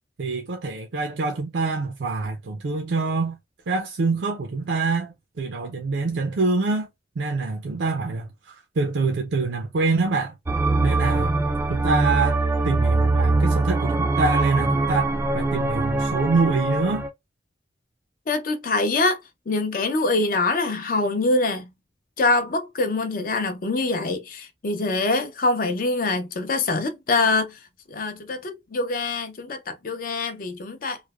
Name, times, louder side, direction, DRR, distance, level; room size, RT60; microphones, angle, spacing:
voice 1, 0.2-3.4 3.7-6.9 7.2-10.3 10.8-11.4 11.7-17.1, right 3 dB, 75° right, 0.5 m, -25 dB
sound 1, 10.5-17.1, right 2 dB, 15° right, 0.3 m, -22 dB
voice 2, 18.3-19.2 19.5-21.7 22.2-27.6 27.9-31.0, left 3 dB, 50° left, 0.5 m, -24 dB
3.1 x 2.0 x 2.3 m
head